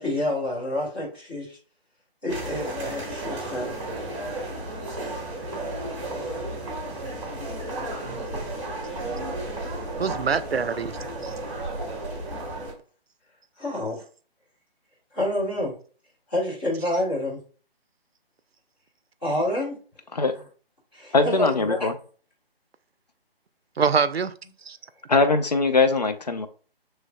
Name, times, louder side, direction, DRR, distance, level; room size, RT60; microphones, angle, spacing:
voice 1, 0.0-1.6 2.2-3.7 13.6-14.0 15.1-15.7 16.3-17.4 19.2-19.8 20.9-21.9, left 1 dB, 10° left, 0.9 m, -28 dB
sound 1, 2.3-12.7, right 1 dB, 30° right, 1.2 m, -33 dB
voice 2, 8.0-8.5 10.0-10.9 23.8-24.3 24.7-24.8, right 5 dB, 80° right, 0.5 m, -25 dB
voice 3, 21.1-22.0 25.1-26.5, left 3 dB, 45° left, 0.4 m, -21 dB
6.1 x 3.2 x 2.2 m
figure-of-eight pair, 150°, 30 cm